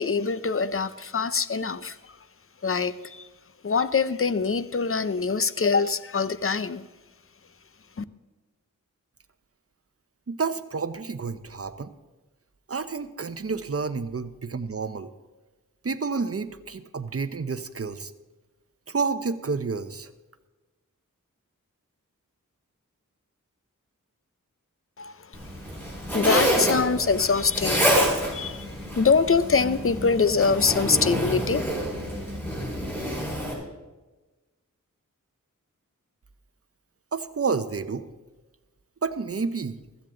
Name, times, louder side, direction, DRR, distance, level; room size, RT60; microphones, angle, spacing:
voice 1, 0.0-2.0 2.6-3.3 3.6-6.9 8.0-8.1 25.0-25.1 26.1-28.0 28.3-28.7 28.9-31.6, left 5 dB, 45° left, 0.6 m, -24 dB
voice 2, 10.3-11.9 12.7-15.1 15.8-18.1 18.9-20.1 37.1-38.1 39.0-39.8, right 4 dB, 45° right, 0.8 m, -30 dB
Zipper (clothing), 25.3-33.5, equal, 5° left, 5.9 m, -27 dB
15.5 x 14.0 x 3.8 m
wide cardioid pair, 75°, 32 cm